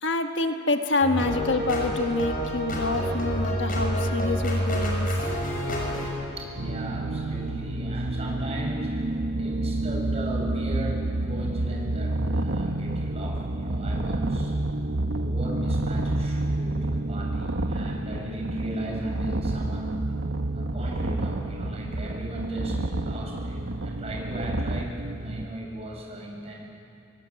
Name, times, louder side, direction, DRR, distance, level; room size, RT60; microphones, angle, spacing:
voice 1, 0.0-5.1, left 2 dB, 70° left, 5 dB, 1.5 m, -27 dB
sound 1, 1.0-6.1, equal, 45° left, 6.2 m, -27 dB
voice 2, 6.4-9.1 9.4-14.5 15.1-20.0 20.5-24.9 25.2-26.6, right 1 dB, 35° right, -2 dB, 7.3 m, -37 dB
sound 2, 6.6-25.5, right 2 dB, 55° right, 0.9 m, -30 dB
sound 3, 12.1-24.8, right 1 dB, 80° right, 1.3 m, -33 dB
25.0 x 23.0 x 9.0 m, 2.6 s
head